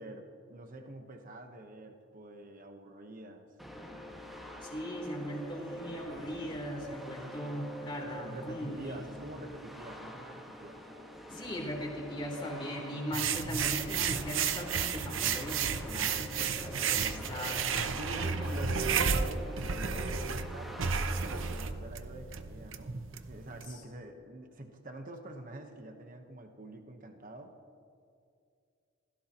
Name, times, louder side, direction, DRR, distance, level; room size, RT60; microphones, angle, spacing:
voice 1, 0.0-3.5 8.0-10.9 17.8-27.5, right 1 dB, 45° right, 5 dB, 1.1 m, -46 dB
sound 1, 3.6-21.7, left 1 dB, ahead, 1.6 m, -46 dB
voice 2, 4.6-9.0 11.3-17.8 18.2-18.8 23.7-23.8, equal, 25° left, -2 dB, 3.5 m, -39 dB
sound 2, 13.1-23.6, right 6 dB, 70° right, 0.8 m, -33 dB
27.5 x 17.5 x 3.0 m, 2.4 s
head